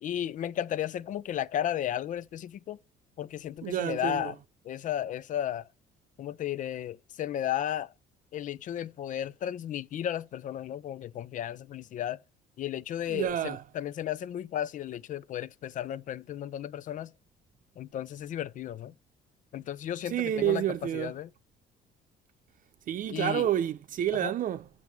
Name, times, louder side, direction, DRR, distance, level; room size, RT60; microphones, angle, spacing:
voice 1, 0.0-2.8 3.2-4.4 4.6-5.7 6.2-7.9 8.3-12.2 12.6-17.1 17.8-18.9 19.5-20.6 20.9-21.3 23.1-23.5 24.2-24.3, left 11 dB, 50° left, 0.4 m, -34 dB
voice 2, 3.6-4.3 13.1-13.6 20.1-21.1 22.9-24.7, right 11 dB, 55° right, 0.7 m, -29 dB
7.5 x 6.0 x 3.4 m
cardioid pair, 110°, 17 cm